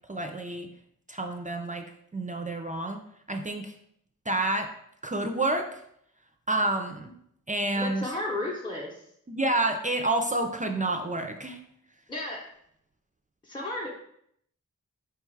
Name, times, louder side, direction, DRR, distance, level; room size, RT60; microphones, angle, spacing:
voice 1, 0.1-0.7 1.1-1.9 2.1-3.0 3.3-3.7 4.3-4.7 5.0-5.8 6.5-7.1 7.5-8.1 9.3-11.6, right 2 dB, 25° right, 4 dB, 0.4 m, -29 dB
voice 2, 7.7-9.0 12.1-12.5 13.4-13.9, left 1 dB, 15° left, -3 dB, 0.7 m, -33 dB
4.7 x 2.3 x 4.5 m, 0.71 s
wide cardioid pair, 65°, 31 cm